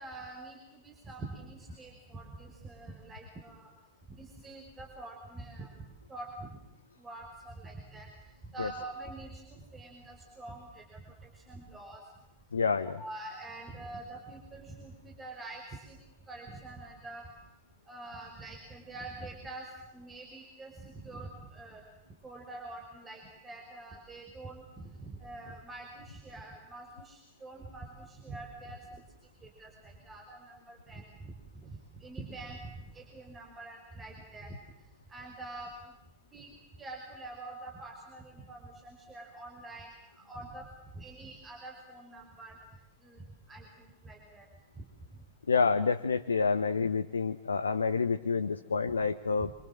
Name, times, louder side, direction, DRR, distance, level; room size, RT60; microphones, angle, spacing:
voice 1, 0.0-3.7 4.1-6.5 7.0-12.0 12.8-16.0 16.3-17.3 17.9-19.7 19.9-21.8 22.2-29.0 29.4-34.6 35.1-35.9 36.3-36.5 36.8-40.7 40.9-42.6 43.0-44.5 44.8-44.9 45.1-45.2, right 2 dB, 20° right, 1 dB, 5.4 m, -46 dB
voice 2, 12.5-13.0 45.5-49.5, left 5 dB, 75° left, 10 dB, 1.0 m, -28 dB
27.0 x 26.5 x 7.5 m, 0.95 s
figure-of-eight pair, 90°, 0 cm